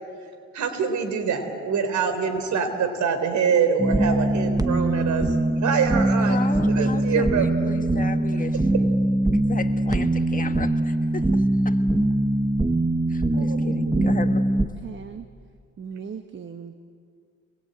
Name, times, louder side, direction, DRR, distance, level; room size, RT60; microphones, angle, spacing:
voice 1, 0.5-6.4 6.7-7.8 8.7-8.9 13.3-14.1, right 6 dB, 70° right, 7 dB, 3.7 m, -25 dB
sound 1, 3.8-14.7, right 1 dB, 10° right, 1.1 m, -22 dB
voice 2, 6.2-8.9 9.5-11.8 13.1-14.5, left 4 dB, 25° left, 7 dB, 1.6 m, -34 dB
voice 3, 14.8-15.3 15.8-16.9, right 6 dB, 40° right, 7 dB, 1.2 m, -38 dB
26.0 x 21.0 x 8.9 m, 2.2 s
cardioid pair, 90°, 30 cm